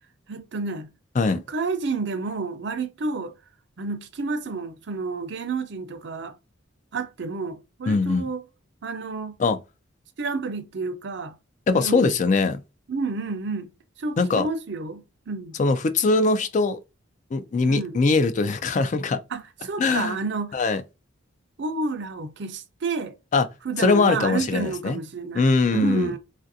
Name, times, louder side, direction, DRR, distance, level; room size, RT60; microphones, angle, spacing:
voice 1, 0.3-0.9 1.3-3.3 3.8-6.4 6.9-8.4 8.8-9.3 10.2-11.4 11.7-12.2 12.9-13.7 14.0-15.6 17.6-18.1 19.3-20.7 21.6-23.1 23.6-26.2, right 4 dB, 60° right, 0.5 m, -30 dB
voice 2, 7.9-8.3 9.4-9.6 11.7-12.6 14.2-14.5 15.6-16.8 17.3-19.2 19.8-20.2 20.5-20.8 23.3-23.5 23.8-25.0 25.3-26.1, left 3 dB, 40° left, 0.3 m, -21 dB
3.3 x 2.5 x 2.6 m
head